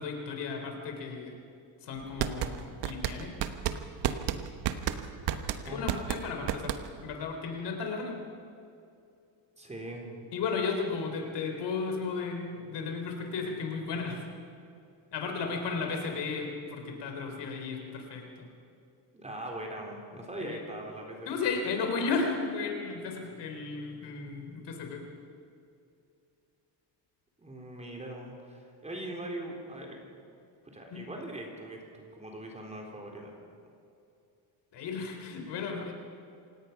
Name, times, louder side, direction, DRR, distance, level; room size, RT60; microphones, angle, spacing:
voice 1, 0.0-1.4 1.8-3.3 5.6-6.7 7.0-8.2 10.3-14.2 15.1-18.5 20.4-20.6 21.3-25.0 30.9-31.0 34.7-35.9, left 4 dB, 75° left, 3 dB, 3.8 m, -34 dB
sound 1, 2.0-7.1, right 10 dB, 80° right, 1.2 m, -32 dB
voice 2, 9.6-10.1 19.1-21.4 27.4-30.0 30.7-33.3, right 1 dB, 15° right, 0 dB, 3.7 m, -41 dB
27.5 x 17.5 x 5.8 m, 2.6 s
cardioid pair, 145°, 41 cm